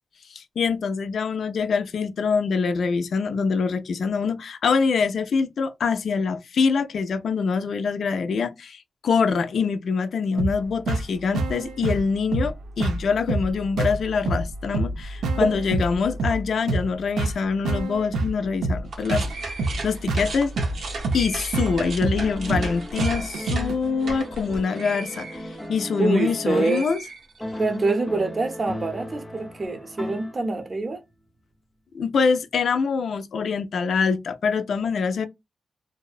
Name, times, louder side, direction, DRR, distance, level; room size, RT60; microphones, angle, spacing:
voice 1, 0.3-20.5 21.1-27.0 31.9-35.3, left 5 dB, 70° left, 0.3 m, -24 dB
sound 1, 10.4-23.8, right 2 dB, 90° right, 0.4 m, -28 dB
sound 2, 18.8-26.3 26.6-27.7, right 3 dB, 75° right, 0.7 m, -36 dB
sound 3, 22.2-27.0 27.4-30.7, left 1 dB, 15° left, 0.6 m, -36 dB
voice 2, 26.0-26.9 27.6-31.0, right 3 dB, 40° right, 0.6 m, -25 dB
2.5 x 2.1 x 2.4 m
cardioid pair, 85°, 0 cm